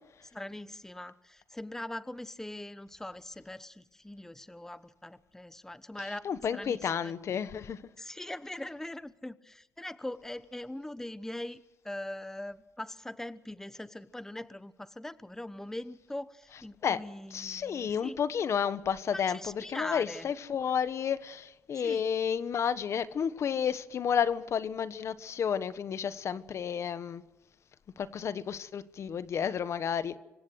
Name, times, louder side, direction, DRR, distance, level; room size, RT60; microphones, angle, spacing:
voice 1, 0.3-7.1 8.0-18.2 19.1-20.3 21.8-22.0, left 1 dB, 5° left, 1.0 m, -41 dB
voice 2, 6.2-7.8 16.8-17.0 17.3-27.2 28.0-30.2, left 7 dB, 55° left, 1.2 m, -31 dB
26.0 x 16.0 x 6.5 m
cardioid pair, 80°, 6 cm